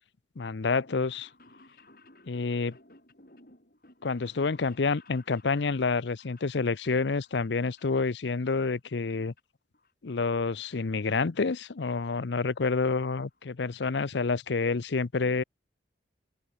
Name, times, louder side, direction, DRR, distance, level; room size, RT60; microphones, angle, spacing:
voice 1, 0.4-1.3 2.3-2.8 4.0-9.3 10.0-15.4, left 4 dB, 80° left, 0.7 m, -28 dB
sound 1, 0.8-8.4 8.7-9.4 9.7-10.8 11.1-11.2 12.1-12.2 12.4-12.5 12.7-12.8 13.1-13.4 13.8-13.9 14.1-14.2, left 2 dB, 55° left, 7.2 m, -58 dB
open air
head